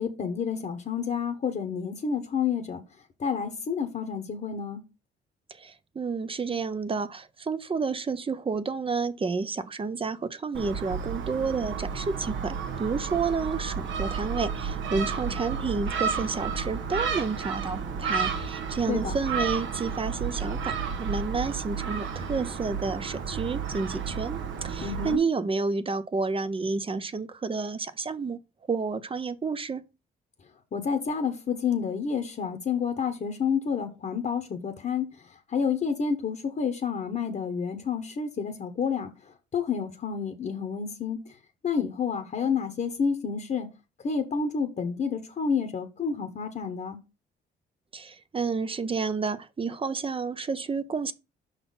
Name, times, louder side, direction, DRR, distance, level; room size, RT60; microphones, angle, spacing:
voice 1, 0.0-2.8 3.2-4.8 18.9-19.1 24.8-25.2 30.7-41.2 41.6-43.7 44.0-47.0, left 6 dB, 40° left, 1.1 m, -29 dB
voice 2, 5.6-28.4 28.7-29.8 47.9-51.1, right 4 dB, 25° right, 0.7 m, -30 dB
Gull seagull, 10.5-25.1, right 6 dB, 70° right, 1.2 m, -32 dB
5.7 x 4.1 x 5.5 m
cardioid pair, 90°, 20 cm